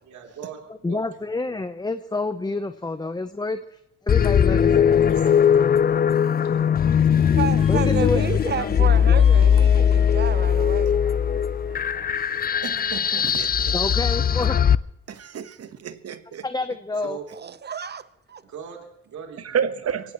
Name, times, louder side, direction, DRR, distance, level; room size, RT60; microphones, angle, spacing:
voice 1, 0.0-1.0 1.4-1.6 4.6-5.7 13.6-13.8 17.0-17.3 18.4-20.1, right 7 dB, 70° right, 3.4 m, -41 dB
voice 2, 0.8-5.0 7.7-9.4 12.7-12.8 13.7-14.6 16.4-17.2, left 3 dB, 15° left, 0.8 m, -29 dB
sound 1, 4.1-14.8, left 8 dB, 30° left, 0.5 m, -19 dB
Subway metro underground, 7.1-13.2, right 5 dB, 85° right, 3.8 m, -46 dB
voice 3, 7.4-11.0 17.4-18.4, right 7 dB, 35° right, 0.9 m, -31 dB
voice 4, 12.6-13.7 15.1-16.5 16.9-17.0 19.4-20.1, right 7 dB, 55° right, 1.3 m, -30 dB
23.0 x 17.0 x 3.1 m
cardioid pair, 90°, 30 cm